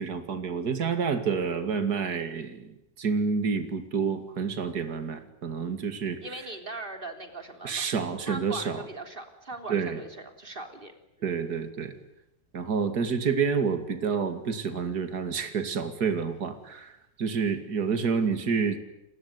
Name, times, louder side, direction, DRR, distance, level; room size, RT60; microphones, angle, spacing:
voice 1, 0.0-6.2 7.6-8.8 9.7-10.0 11.2-11.9 12.5-16.9 17.2-18.8, right 5 dB, 55° right, 9 dB, 2.7 m, -28 dB
voice 2, 6.2-7.9 8.3-10.9, right 2 dB, 30° right, 6 dB, 3.7 m, -40 dB
29.5 x 21.0 x 9.6 m, 0.89 s
omnidirectional pair, 2.0 m